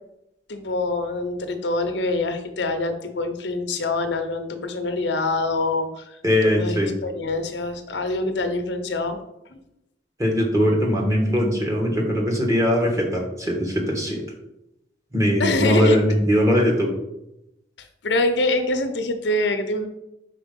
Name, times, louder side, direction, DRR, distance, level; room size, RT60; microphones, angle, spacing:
voice 1, 0.5-6.8 7.0-9.2 9.5-9.6 15.4-16.0 17.8-19.9, left 2 dB, 75° left, 7 dB, 0.7 m, -25 dB
voice 2, 6.2-6.9 10.2-14.2 15.1-16.9, equal, 15° right, -1 dB, 1.4 m, -20 dB
5.0 x 4.5 x 5.2 m, 0.86 s
head